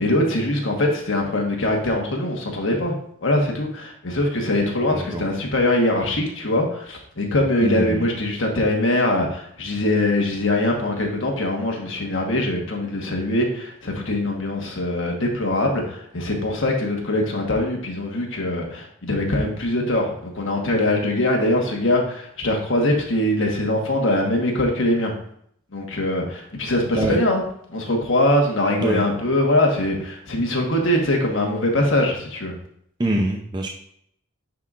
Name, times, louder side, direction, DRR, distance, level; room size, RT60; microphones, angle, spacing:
voice 1, 0.0-2.9 3.2-25.1 25.7-27.4 27.7-32.5, left 1 dB, 65° left, 1 dB, 1.4 m, -22 dB
voice 2, 4.9-5.2 7.6-8.0 26.9-27.2 28.8-29.0 33.0-33.7, right 1 dB, 20° right, 1 dB, 0.5 m, -24 dB
9.3 x 4.1 x 2.5 m, 0.68 s
head